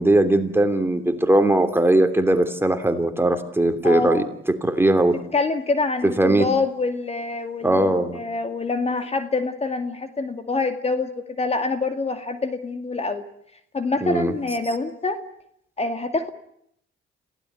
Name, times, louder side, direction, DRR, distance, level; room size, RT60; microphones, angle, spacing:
voice 1, 0.0-4.2 4.6-5.1 6.2-6.5 7.6-8.2 14.0-14.3, right 1 dB, 10° right, 7 dB, 3.1 m, -19 dB
voice 2, 3.8-4.3 5.3-11.1 11.4-13.2 13.7-15.2 15.8-16.3, left 3 dB, 30° left, 8 dB, 2.3 m, -25 dB
26.5 x 16.5 x 9.4 m, 0.73 s
cardioid pair, 80°, 21 cm